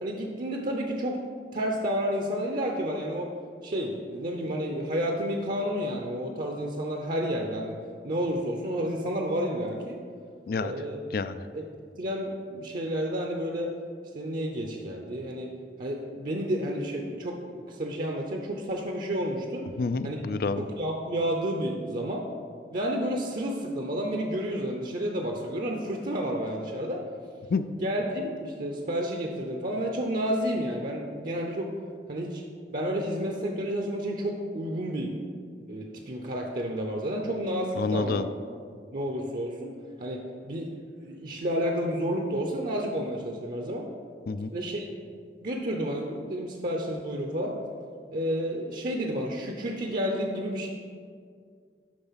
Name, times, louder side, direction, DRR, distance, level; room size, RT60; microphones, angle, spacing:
voice 1, 0.0-1.2 1.5-3.3 3.6-7.8 8.0-10.0 10.6-11.0 11.5-11.6 12.0-13.7 14.1-15.5 15.8-19.6 20.0-20.2 20.6-22.2 22.7-27.0 27.8-31.7 32.1-32.4 32.7-35.1 35.7-38.3 38.9-39.7 40.0-40.7 41.0-43.9 44.5-44.9 45.4-47.5 48.1-50.7, equal, 50° right, 1 dB, 0.7 m, -30 dB
voice 2, 11.1-11.5 19.8-20.6 27.5-27.7 37.8-38.3 44.3-44.5, left 4 dB, 55° left, 12 dB, 0.4 m, -28 dB
11.5 x 3.9 x 5.7 m, 2.1 s
head